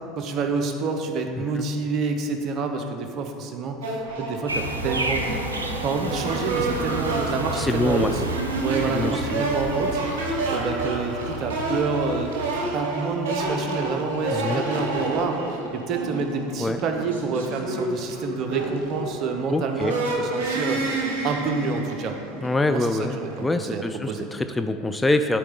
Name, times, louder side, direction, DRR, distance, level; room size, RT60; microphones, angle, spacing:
voice 1, 0.2-5.2 5.8-8.2 8.6-12.4 12.7-22.2 22.7-24.3, right 4 dB, 45° right, 5 dB, 0.8 m, -28 dB
sound 1, 3.3-6.4, right 1 dB, 5° right, 1.4 m, -43 dB
sound 2, 3.8-23.5, right 2 dB, 70° right, 1.1 m, -30 dB
sound 3, 4.5-12.7, right 2 dB, 85° right, 0.5 m, -31 dB
voice 2, 7.6-8.1 8.9-9.5 14.3-14.6 16.6-16.8 19.5-20.0 22.4-25.4, left 2 dB, 10° left, 7 dB, 0.4 m, -25 dB
12.0 x 4.3 x 3.8 m, 2.4 s
figure-of-eight pair, 75°, 0 cm